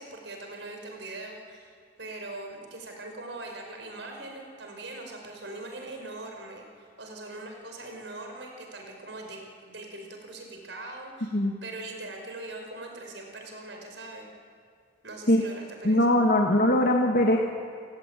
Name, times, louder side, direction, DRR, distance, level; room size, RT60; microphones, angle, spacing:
voice 1, 0.0-11.3 11.6-14.3 15.0-16.1, right 2 dB, 80° right, 2 dB, 5.3 m, -41 dB
voice 2, 15.8-17.4, left 1 dB, 55° left, 1 dB, 2.0 m, -21 dB
30.0 x 17.0 x 9.2 m, 2.2 s
head